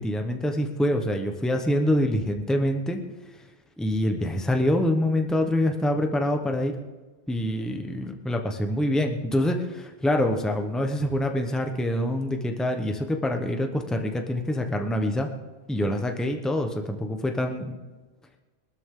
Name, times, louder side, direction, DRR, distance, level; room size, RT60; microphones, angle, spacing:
voice 1, 0.0-3.0 3.8-6.7 7.3-15.3 15.7-17.7, left 1 dB, ahead, 4 dB, 0.9 m, -25 dB
20.5 x 13.0 x 3.8 m, 1.3 s
omnidirectional pair, 1.0 m